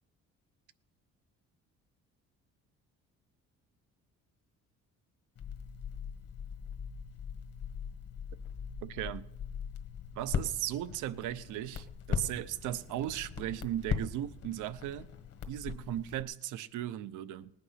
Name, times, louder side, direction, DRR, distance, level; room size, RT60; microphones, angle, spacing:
Crackle, 5.4-16.2, left 7 dB, 55° left, 1.5 m, -40 dB
voice 1, 8.8-9.2 10.1-15.1 15.5-17.5, right 13 dB, 80° right, 15 dB, 0.7 m, -37 dB
19.5 x 8.6 x 5.8 m, 0.81 s
cardioid pair, 100°, 30 cm